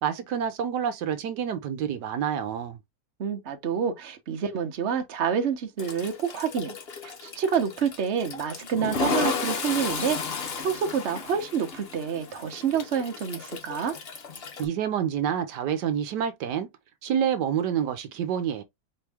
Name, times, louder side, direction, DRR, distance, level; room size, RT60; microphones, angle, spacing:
voice 1, 0.0-2.8 14.6-16.7 17.0-18.6, right 8 dB, 75° right, 1.3 m, -28 dB
voice 2, 3.2-6.8 7.0-13.9, right 7 dB, 45° right, 1.0 m, -28 dB
Toilet flush, 5.8-14.7, left 5 dB, 45° left, 0.9 m, -33 dB
4.5 x 3.0 x 3.4 m
omnidirectional pair, 1.8 m